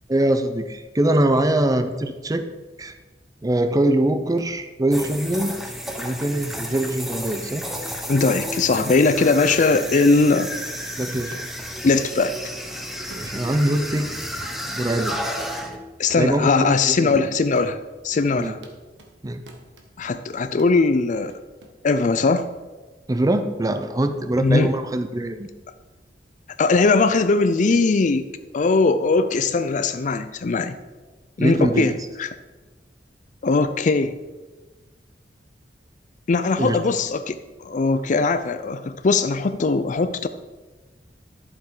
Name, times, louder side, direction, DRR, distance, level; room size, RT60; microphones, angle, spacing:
voice 1, 0.1-2.5 2.8-3.0 3.4-5.6 6.0-7.7 11.0-11.4 13.2-14.1 14.7-15.2 16.2-17.2 18.4-18.5 19.2-19.4 23.1-25.5 31.4-31.9 36.6-36.8, right 1 dB, 20° right, 9 dB, 0.5 m, -23 dB
sound 1, 4.4-4.5 5.0-5.2 5.9-6.0 6.5-6.6 7.1-7.2 7.7-7.8 8.2-8.4 8.8-9.0 9.4-9.6 10.0-10.2 10.7-10.8 11.3-11.5 11.9-12.0 12.5-12.7 13.1-14.3 14.7-14.9 15.2-16.8 17.1-17.2 17.6-17.7 18.1-18.3 18.6-19.1 19.5-20.2 20.6-20.8 21.3-22.5, right 2 dB, 80° right, 1.4 m, -47 dB
sound 2, 4.9-15.8, equal, ahead, 1.0 m, -32 dB
voice 2, 8.1-10.5 11.8-12.4 16.0-18.6 20.0-21.4 21.8-22.5 24.4-24.7 26.6-28.2 28.5-30.8 31.4-31.9 32.2-32.3 33.4-34.2 36.3-40.3, left 3 dB, 45° left, 10 dB, 0.4 m, -20 dB
11.5 x 7.3 x 4.9 m, 1.2 s
head